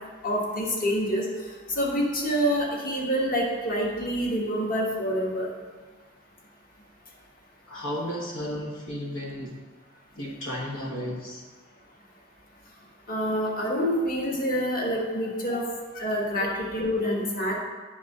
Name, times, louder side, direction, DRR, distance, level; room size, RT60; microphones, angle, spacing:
voice 1, 0.2-1.3 1.7-5.5 13.1-15.6 15.9-17.5, equal, 45° left, -2 dB, 1.3 m, -27 dB
voice 2, 7.7-9.5 10.2-11.4 15.5-15.6 16.4-16.5, equal, 75° left, -3 dB, 1.1 m, -33 dB
9.3 x 3.7 x 5.3 m, 1.4 s
head